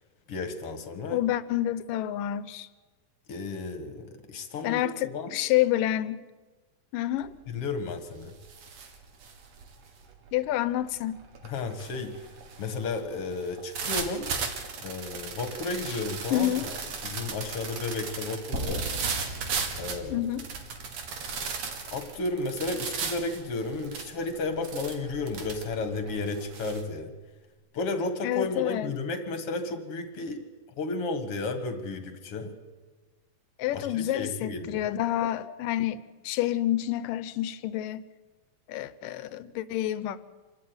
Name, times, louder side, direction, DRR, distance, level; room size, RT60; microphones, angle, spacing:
voice 1, 0.3-1.2 3.3-5.4 7.5-8.3 11.4-12.2 12.6-14.3 14.8-18.9 19.7-20.3 21.9-27.1 27.7-30.4 30.8-32.6 33.7-34.9, left 3 dB, 50° left, 2.6 m, -33 dB
voice 2, 1.1-2.7 4.6-6.3 6.9-7.3 10.3-11.2 16.3-16.7 20.1-20.5 28.2-28.9 33.6-38.0 38.7-40.2, left 13 dB, 90° left, 2.5 m, -28 dB
sound 1, 7.2-7.5 7.9-26.8, right 5 dB, 55° right, 2.9 m, -37 dB
sound 2, 18.5-22.6, right 1 dB, 25° right, 2.4 m, -39 dB
27.0 x 13.0 x 9.5 m
omnidirectional pair, 3.7 m